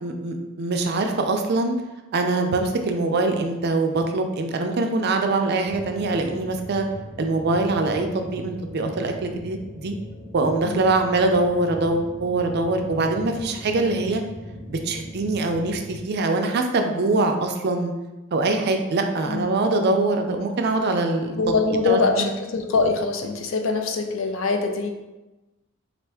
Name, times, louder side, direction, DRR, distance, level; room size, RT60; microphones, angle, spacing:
voice 1, 0.0-1.8 2.1-6.8 7.2-9.9 10.3-14.2 14.7-17.9 18.3-21.4 21.9-22.3, right 2 dB, 50° right, 4 dB, 0.4 m, -23 dB
sound 1, 5.6-16.0, equal, 10° left, 0.7 m, -39 dB
voice 2, 21.4-24.9, left 4 dB, 65° left, 5 dB, 0.4 m, -23 dB
4.2 x 2.4 x 3.4 m, 1.1 s
head